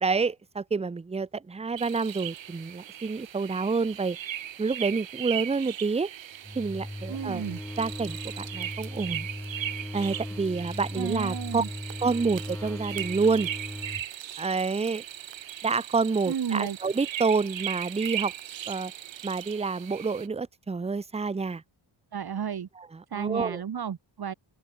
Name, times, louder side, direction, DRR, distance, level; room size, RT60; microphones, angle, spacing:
voice 1, 0.0-6.1 6.5-7.5 7.8-9.3 9.9-11.6 12.0-13.5 14.4-15.0 15.6-18.3 18.7-18.9 19.2-21.6 22.8-23.6, right 4 dB, 15° right, 0.5 m, -28 dB
sound 1, 1.8-20.3, right 11 dB, 70° right, 1.0 m, -38 dB
sound 2, 6.4-14.1, left 1 dB, 5° left, 1.3 m, -38 dB
voice 2, 7.1-7.6 10.9-11.7 16.3-16.8 22.1-22.7 23.1-24.3, right 8 dB, 50° right, 1.4 m, -32 dB
wide cardioid pair, 105°, 47 cm